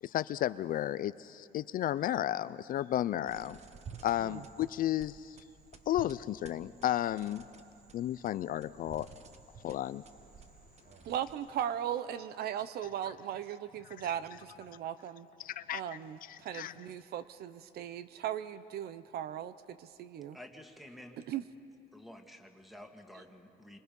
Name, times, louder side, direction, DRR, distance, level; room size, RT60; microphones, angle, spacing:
voice 1, 0.0-3.6 4.0-5.4 5.9-7.4 7.9-9.1 9.6-10.0 15.4-15.8 16.3-16.7, left 12 dB, 55° left, 15 dB, 0.5 m, -33 dB
sound 1, 3.3-11.7, right 6 dB, 40° right, 1.3 m, -53 dB
voice 2, 11.0-15.3 15.7-20.4 21.3-21.4, right 10 dB, 70° right, 13 dB, 0.8 m, -38 dB
voice 3, 20.3-21.3 21.9-23.8, left 1 dB, ahead, 4 dB, 2.1 m, -51 dB
28.5 x 25.5 x 5.4 m, 2.5 s
cardioid pair, 110°, 17 cm